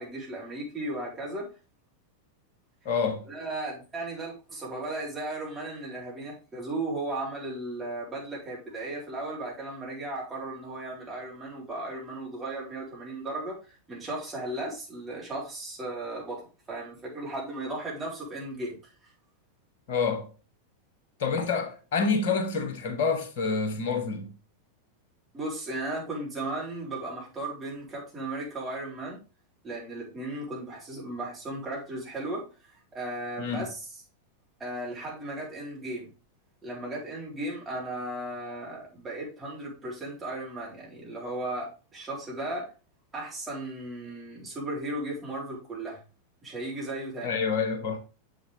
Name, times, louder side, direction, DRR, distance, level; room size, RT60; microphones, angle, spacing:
voice 1, 0.0-1.5 3.3-18.8 25.3-29.2 29.6-32.4 32.9-34.0 34.6-36.1 36.6-42.7 43.1-46.0 46.4-47.4, right 2 dB, 15° right, 3.9 m, -36 dB
voice 2, 2.8-3.3 19.9-20.3 21.2-24.3 33.4-33.7 47.2-48.0, left 5 dB, 55° left, 1.3 m, -28 dB
7.1 x 6.4 x 3.4 m
figure-of-eight pair, 90°, 0 cm